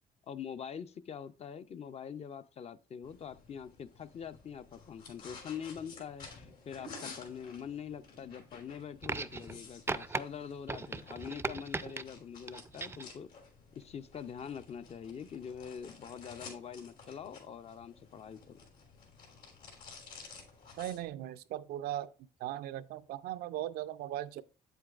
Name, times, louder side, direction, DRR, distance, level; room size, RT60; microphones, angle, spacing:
voice 1, 0.3-13.3 13.8-18.6, left 7 dB, 40° left, 0.5 m, -44 dB
sound 1, 3.0-21.1, left 4 dB, 70° left, 3.2 m, -53 dB
sound 2, 9.0-9.6 9.9-10.2 10.7-12.0 12.5-13.1 14.2-14.3, right 3 dB, 15° right, 0.4 m, -37 dB
voice 2, 20.8-22.1 22.4-24.4, right 13 dB, 85° right, 0.5 m, -38 dB
8.2 x 7.8 x 2.4 m
cardioid pair, 100°, 16 cm